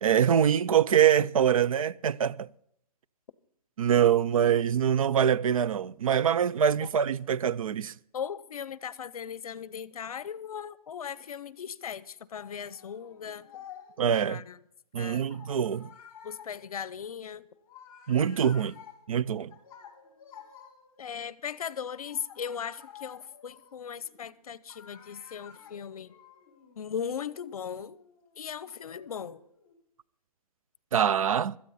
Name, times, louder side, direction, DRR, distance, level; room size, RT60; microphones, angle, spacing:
voice 1, 0.0-2.5 3.8-7.9 14.0-14.4 14.9-15.9 18.1-18.8 19.1-19.5 30.9-31.6, right 9 dB, 60° right, 0.4 m, -24 dB
voice 2, 8.1-13.5 14.3-14.6 15.0-15.3 16.2-17.5 21.0-26.1 26.8-28.0 28.4-29.4, left 7 dB, 65° left, 0.8 m, -38 dB
sound 1, 12.3-14.1 15.3-21.2 21.9-24.3 24.7-29.7, left 8 dB, 25° left, 2.9 m, -52 dB
16.5 x 13.0 x 4.1 m
hypercardioid pair, 175°, 20 cm